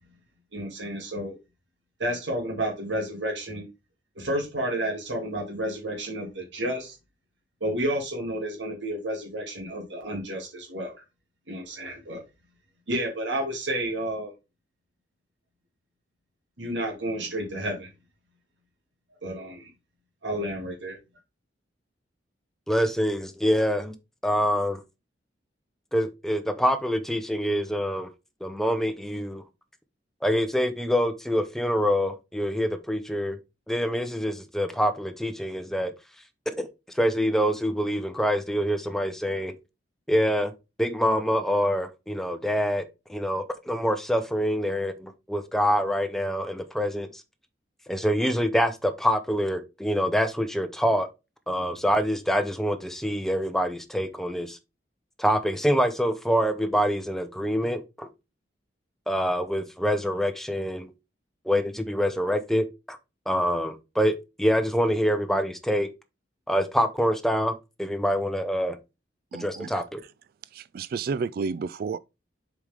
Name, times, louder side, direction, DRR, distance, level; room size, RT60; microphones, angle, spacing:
voice 1, 0.5-1.4 2.0-3.7 4.2-7.0 7.6-10.9 11.5-12.2 12.9-14.3 16.6-17.9 19.2-19.7 20.2-21.0, right 1 dB, 80° right, 2.4 m, -31 dB
voice 2, 22.7-23.9 24.2-24.8 25.9-28.1 28.4-29.4 30.2-33.4 33.7-35.9 36.6-36.7 36.9-39.5 40.1-40.5 40.8-47.2 47.9-51.1 51.5-54.6 55.2-58.1 59.1-60.9 61.4-63.0 63.3-65.9 66.5-68.8 69.4-70.0, equal, ahead, 0.9 m, -25 dB
voice 3, 69.3-69.7 70.5-72.0, right 5 dB, 55° right, 0.3 m, -31 dB
7.1 x 4.9 x 3.6 m
head